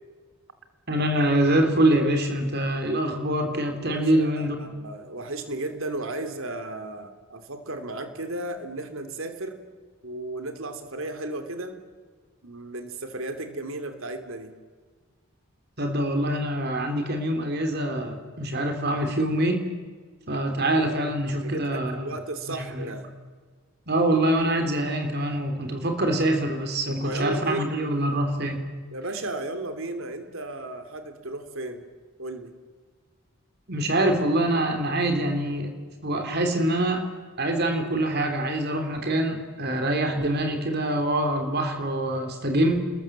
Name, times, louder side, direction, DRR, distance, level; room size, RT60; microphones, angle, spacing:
voice 1, 0.9-4.6 15.8-19.7 20.3-22.0 22.5-22.9 23.9-28.6 33.7-35.7 36.0-37.1 37.4-42.8, right 1 dB, 45° right, 5 dB, 3.8 m, -25 dB
voice 2, 3.8-9.6 10.0-11.8 12.4-14.5 21.3-23.1 26.9-27.8 28.9-31.8 32.2-32.5, right 2 dB, 65° right, 8 dB, 3.2 m, -34 dB
29.5 x 22.0 x 7.6 m, 1.5 s
head